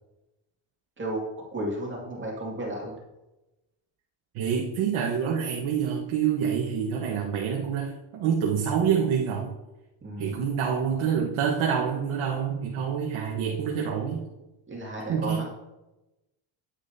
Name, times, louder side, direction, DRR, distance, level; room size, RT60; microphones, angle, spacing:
voice 1, 1.5-3.0 10.0-10.4 14.7-15.5, right 1 dB, 25° right, -3 dB, 2.2 m, -33 dB
voice 2, 4.3-9.5 10.2-14.3 15.1-15.4, right 7 dB, 85° right, -2 dB, 1.4 m, -27 dB
10.0 x 9.6 x 2.8 m, 0.99 s
cardioid pair, 155°, 48 cm